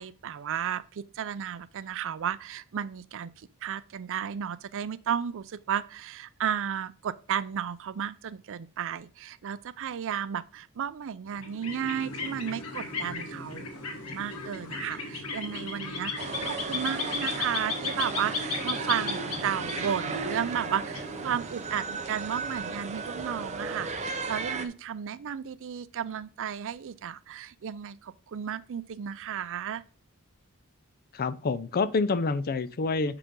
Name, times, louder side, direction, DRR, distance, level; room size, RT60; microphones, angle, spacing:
voice 1, 0.0-13.7 14.1-29.8, right 8 dB, 60° right, 0.4 m, -33 dB
sound 1, 11.3-21.7, left 3 dB, 80° left, 1.6 m, -35 dB
sound 2, 16.2-24.7, right 4 dB, 30° right, 0.7 m, -35 dB
voice 2, 31.1-33.2, left 4 dB, 40° left, 0.4 m, -27 dB
5.7 x 4.9 x 5.4 m
head